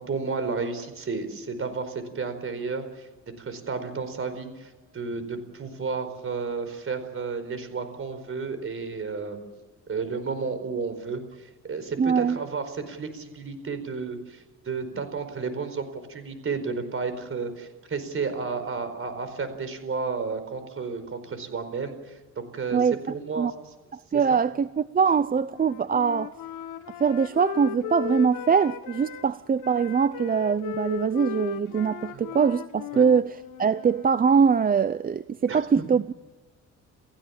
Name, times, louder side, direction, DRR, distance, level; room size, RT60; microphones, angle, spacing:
voice 1, 0.0-3.1 3.4-9.4 9.9-22.8 23.1-23.5 24.1-24.2 32.1-32.2 32.9-33.1 35.5-35.9, right 4 dB, 45° right, 10 dB, 4.7 m, -32 dB
voice 2, 12.0-12.4 22.7-23.0 23.4-23.5 23.9-26.3 27.0-36.1, right 6 dB, 30° right, 15 dB, 0.6 m, -23 dB
Wind instrument woodwind instrument, 25.5-29.3 29.6-34.1, left 12 dB, 85° left, 1.2 m, -37 dB
29.0 x 15.5 x 7.3 m, 1.3 s
cardioid pair, 90°, 30 cm